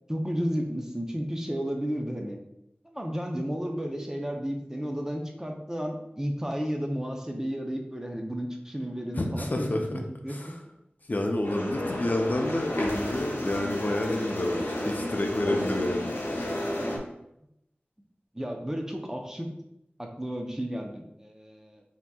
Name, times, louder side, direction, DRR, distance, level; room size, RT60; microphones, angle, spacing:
voice 1, 0.1-2.4 2.8-10.4 16.9-17.1 18.3-19.5 20.0-21.8, equal, 15° right, 2 dB, 0.6 m, -33 dB
voice 2, 9.2-10.0 10.3-10.6 11.1-16.1, left 1 dB, 45° left, 2 dB, 0.6 m, -29 dB
sound 1, 11.4-17.0, left 1 dB, 85° left, 0.8 m, -31 dB
5.8 x 2.8 x 2.3 m, 0.83 s
wide cardioid pair, 60°, 4 cm